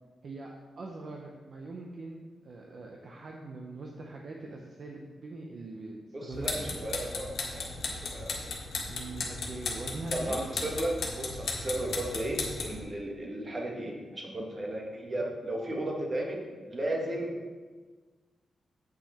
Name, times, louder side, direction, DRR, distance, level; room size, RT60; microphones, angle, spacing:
voice 1, 0.8-6.8 8.9-10.4, right 2 dB, 50° right, 0 dB, 0.8 m, -42 dB
voice 2, 6.1-8.3 10.1-17.6, right 1 dB, 35° right, 0 dB, 1.5 m, -35 dB
sound 1, 6.3-12.8, left 3 dB, 75° left, 1.5 m, -36 dB
8.0 x 5.8 x 4.3 m, 1.4 s
cardioid pair, 110°, 0 cm